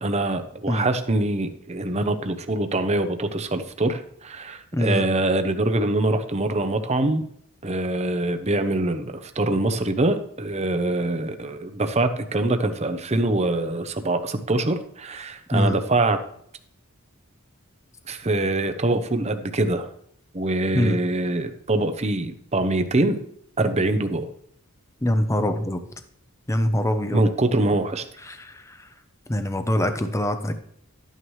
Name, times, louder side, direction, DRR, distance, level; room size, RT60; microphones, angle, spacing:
voice 1, 0.0-7.2 7.6-16.2 18.1-19.9 20.3-23.2 23.6-24.3 27.0-28.0, right 2 dB, 30° right, 8 dB, 0.8 m, -24 dB
voice 2, 4.7-5.0 15.5-15.8 20.7-21.0 25.0-25.8 26.5-27.2 28.3-28.9 29.3-30.5, left 1 dB, 15° left, 8 dB, 0.7 m, -23 dB
12.5 x 9.1 x 3.2 m, 0.69 s
head